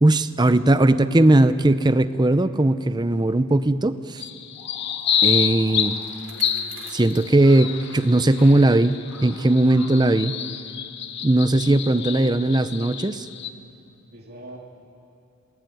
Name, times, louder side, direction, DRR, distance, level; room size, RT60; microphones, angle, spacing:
voice 1, 0.0-4.3 5.2-6.0 6.9-9.0 9.2-10.4 11.2-13.2, right 1 dB, 20° right, 12 dB, 0.6 m, -18 dB
sound 1, 3.1-3.2 3.5-3.6 3.9-10.1, left 1 dB, 90° left, 7.8 m, -47 dB
sound 2, 4.2-13.5, left 8 dB, 50° left, 0.9 m, -28 dB
Bicycle, 4.8-8.7 9.1-9.2 10.0-10.1, right 7 dB, 80° right, 2.8 m, -49 dB
voice 2, 11.8-12.9 14.1-14.6, right 1 dB, 45° right, -2 dB, 2.7 m, -41 dB
28.0 x 20.5 x 9.3 m, 2.7 s
head